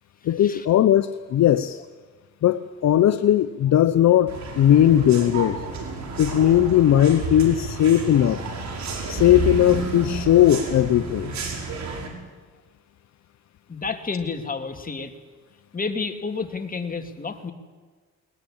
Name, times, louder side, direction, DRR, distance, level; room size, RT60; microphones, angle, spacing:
voice 1, 0.2-1.8 2.4-5.6 6.2-8.4 9.1-11.3, left 11 dB, 65° left, 11 dB, 0.9 m, -18 dB
sound 1, 4.3-12.1, right 3 dB, 65° right, 5.9 m, -31 dB
voice 2, 13.7-15.1 15.7-17.5, left 4 dB, 30° left, 6 dB, 2.8 m, -30 dB
21.5 x 20.0 x 8.8 m, 1.4 s
cardioid pair, 90°, 30 cm